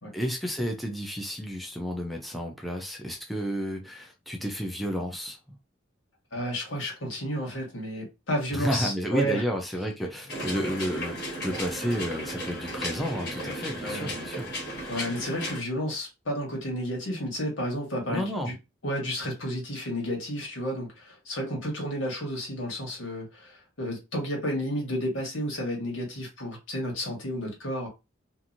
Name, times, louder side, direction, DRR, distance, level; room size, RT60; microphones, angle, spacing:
voice 1, 0.1-5.4 8.5-14.5 18.1-18.5, equal, ahead, 0.5 m, -31 dB
voice 2, 6.3-9.4 13.8-14.1 14.9-18.5 18.8-27.9, equal, 85° left, 1.5 m, -31 dB
sound 1, 10.3-15.6, equal, 55° left, 1.4 m, -35 dB
2.9 x 2.6 x 2.6 m
head